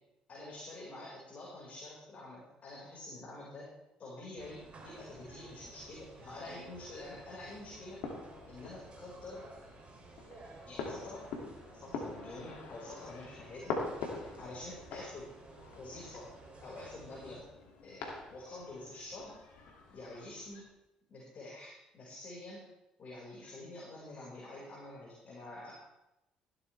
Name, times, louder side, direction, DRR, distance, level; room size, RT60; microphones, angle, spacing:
voice 1, 0.3-3.7 4.0-8.1 8.5-9.5 10.7-11.3 11.8-13.8 14.4-15.3 15.7-16.3 16.6-17.5 17.8-19.4 19.9-20.7 21.1-22.7 23.0-25.7, left 2 dB, 45° left, -6 dB, 5.4 m, -47 dB
sound 1, 4.4-17.4, right 3 dB, 45° right, 3.4 m, -54 dB
sound 2, 5.1-20.6, left 4 dB, 70° left, 2.7 m, -46 dB
16.0 x 12.0 x 3.5 m, 0.92 s
hypercardioid pair, 55°, 3 cm